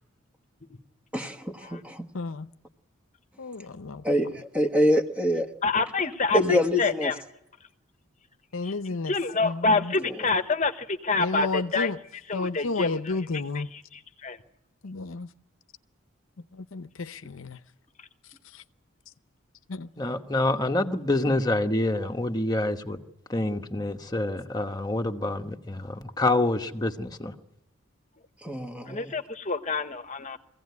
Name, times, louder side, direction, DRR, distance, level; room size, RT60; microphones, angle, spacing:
voice 1, 1.1-2.1 4.0-5.5 6.3-7.1 10.0-10.1 28.4-29.1, equal, 5° right, 1.2 m, -25 dB
voice 2, 2.1-2.5 3.4-4.0 8.5-9.1 9.4-9.9 11.2-12.0 12.3-13.7 14.8-15.3 16.5-17.6 18.5-18.6 19.7-19.9, left 3 dB, 75° left, 0.7 m, -32 dB
voice 3, 5.6-7.1 8.6-8.7 9.1-11.9 12.3-14.4 28.9-30.4, left 3 dB, 35° left, 1.1 m, -27 dB
voice 4, 20.0-23.0 23.3-27.3, left 2 dB, 20° left, 1.2 m, -27 dB
23.0 x 16.5 x 9.5 m
head